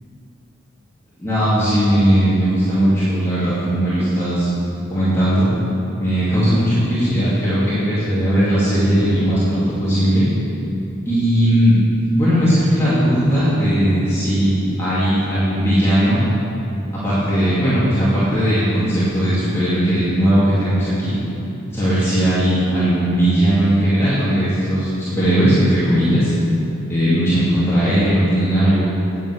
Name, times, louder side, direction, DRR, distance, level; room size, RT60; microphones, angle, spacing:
voice 1, 1.2-4.5 4.9-5.5 6.0-10.3 11.1-11.8 12.1-16.2 17.0-21.2 21.7-26.3 26.9-28.9, equal, 15° left, -12 dB, 2.3 m, -17 dB
9.0 x 7.0 x 8.0 m, 2.9 s
head